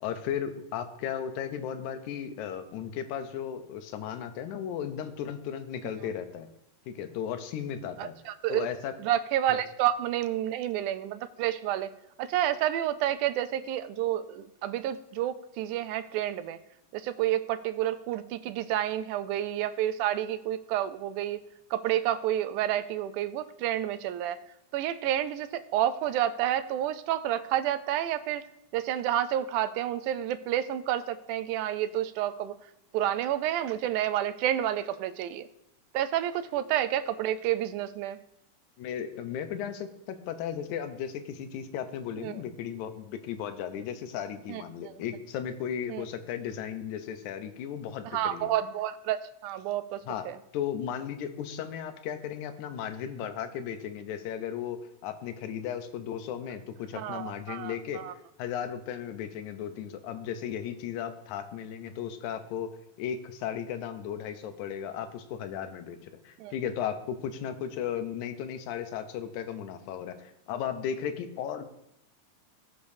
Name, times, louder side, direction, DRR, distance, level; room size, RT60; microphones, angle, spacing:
voice 1, 0.0-6.5 6.9-8.2 8.5-8.9 9.5-9.6 38.8-48.5 50.1-50.3 50.5-58.0 58.4-62.7 63.0-71.7, left 8 dB, 75° left, 8 dB, 2.1 m, -35 dB
voice 2, 8.0-8.7 9.0-11.9 12.2-16.6 16.9-21.4 21.7-24.4 24.7-28.5 28.7-32.5 32.9-35.5 35.9-38.2 42.2-42.4 44.5-44.6 45.9-46.0 48.1-50.4 56.9-58.1 66.4-66.5, right 12 dB, 80° right, 11 dB, 2.0 m, -29 dB
18.0 x 6.7 x 2.7 m, 0.83 s
omnidirectional pair, 3.7 m